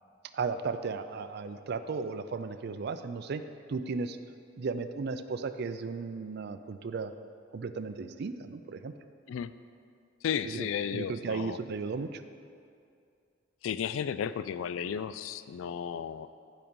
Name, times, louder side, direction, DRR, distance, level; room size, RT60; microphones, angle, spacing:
voice 1, 0.3-3.4 3.7-4.2 4.6-7.1 7.5-8.9 10.5-12.2, right 4 dB, 55° right, 10 dB, 0.4 m, -35 dB
voice 2, 10.2-11.6 13.6-16.3, left 8 dB, 80° left, 13 dB, 0.3 m, -34 dB
8.6 x 5.3 x 5.3 m, 2.4 s
head